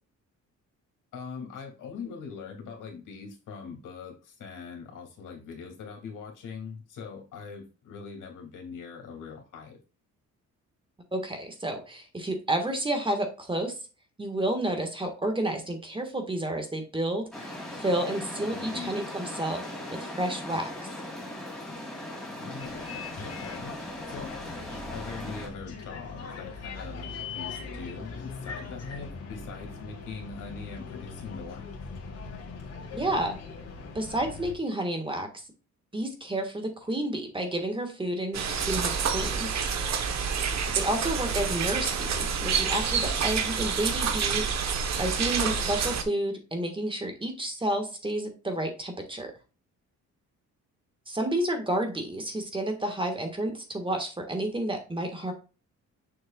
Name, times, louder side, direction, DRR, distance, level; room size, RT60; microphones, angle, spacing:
voice 1, 1.1-9.8 18.5-19.0 22.4-23.7 24.1-24.3 24.9-31.7 40.7-41.0, left 5 dB, 80° left, 2 dB, 2.6 m, -42 dB
voice 2, 11.1-13.7 14.2-19.6 19.9-20.7 32.9-33.4 33.9-35.4 35.9-39.5 40.7-49.3 51.1-55.3, right 1 dB, 15° right, 5 dB, 1.6 m, -30 dB
sound 1, 17.3-25.5, left 1 dB, ahead, 2.7 m, -39 dB
Bus, 22.6-34.5, left 4 dB, 55° left, 2.2 m, -41 dB
sound 2, 38.3-46.0, right 6 dB, 60° right, 1.2 m, -28 dB
6.6 x 6.5 x 2.4 m, 0.33 s
cardioid pair, 120°, 31 cm